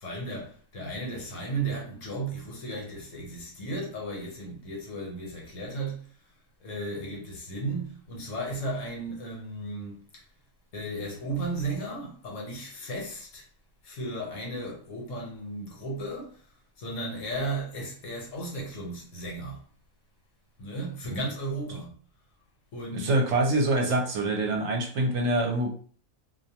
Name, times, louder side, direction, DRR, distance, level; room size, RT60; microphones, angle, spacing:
voice 1, 0.0-6.1 6.6-10.2 10.7-13.4 13.8-16.4 16.8-19.6 20.6-21.9 22.7-23.1, right 2 dB, 70° left, 1.2 m, -35 dB
voice 2, 22.9-25.7, right 2 dB, 65° right, 0.9 m, -25 dB
2.5 x 2.1 x 2.8 m
omnidirectional pair, 1.4 m